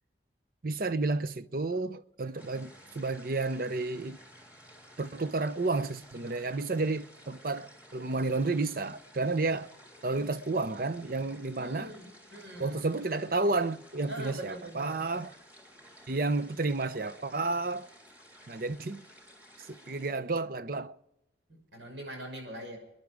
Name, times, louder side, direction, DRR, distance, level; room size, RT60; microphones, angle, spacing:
voice 1, 0.6-4.2 5.0-9.7 10.0-11.9 12.6-15.3 16.1-17.9 18.5-19.0 19.6-20.9, right 3 dB, 50° right, 0.7 m, -31 dB
sound 1, 2.4-20.1, equal, 10° right, 3.2 m, -54 dB
voice 2, 11.6-12.9 14.1-15.1 21.5-22.8, right 1 dB, 80° right, 6.1 m, -43 dB
26.0 x 11.0 x 4.9 m
head